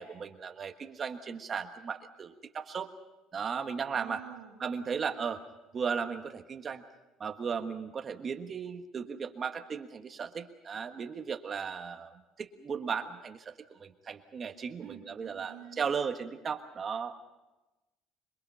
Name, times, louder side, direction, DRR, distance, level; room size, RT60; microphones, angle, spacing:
voice 1, 0.0-2.9 3.3-4.2 4.6-5.4 5.7-6.8 7.2-17.2, right 6 dB, 30° right, 6 dB, 1.4 m, -36 dB
voice 2, 3.9-4.6 14.8-15.8, right 11 dB, 90° right, -4 dB, 4.4 m, -48 dB
27.0 x 22.0 x 5.6 m, 1.0 s
cardioid pair, 135°, 0 cm